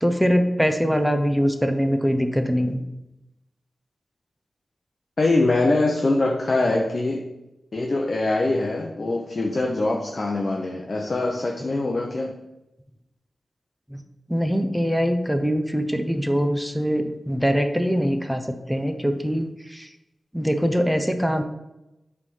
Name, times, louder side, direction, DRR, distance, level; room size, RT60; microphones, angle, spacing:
voice 1, 0.0-2.8 11.7-11.8 13.9-14.0 14.3-19.9 20.3-21.4, equal, 5° right, 7 dB, 0.6 m, -23 dB
voice 2, 5.2-7.3 7.7-12.3, left 2 dB, 45° left, 1 dB, 0.7 m, -23 dB
7.9 x 3.5 x 5.5 m, 0.94 s
wide cardioid pair, 95°, 0 cm